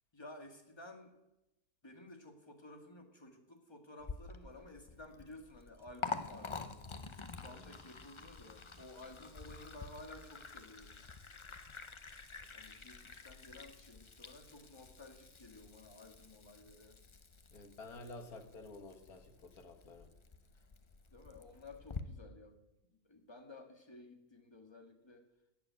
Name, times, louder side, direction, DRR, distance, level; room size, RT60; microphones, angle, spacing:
voice 1, 0.1-1.1 1.8-6.8 7.3-11.1 12.5-17.0 21.1-22.6 22.9-25.3, left 2 dB, 20° left, 3 dB, 1.7 m, -54 dB
Liquid, 4.0-22.0, left 4 dB, 35° left, 0.4 m, -48 dB
voice 2, 17.5-20.1, left 2 dB, 75° left, 5 dB, 2.1 m, -51 dB
14.0 x 7.5 x 9.4 m, 0.95 s
omnidirectional pair, 1.6 m